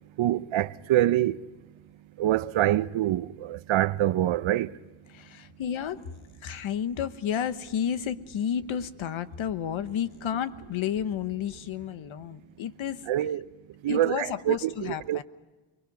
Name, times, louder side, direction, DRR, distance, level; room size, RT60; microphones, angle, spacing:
voice 1, 0.2-1.4 2.2-4.7 13.1-13.4 13.8-15.2, right 13 dB, 80° right, 0.7 m, -25 dB
voice 2, 5.1-6.1 6.4-13.0 13.9-15.2, left 9 dB, 80° left, 1.1 m, -31 dB
29.5 x 21.5 x 5.3 m
cardioid pair, 90°, 47 cm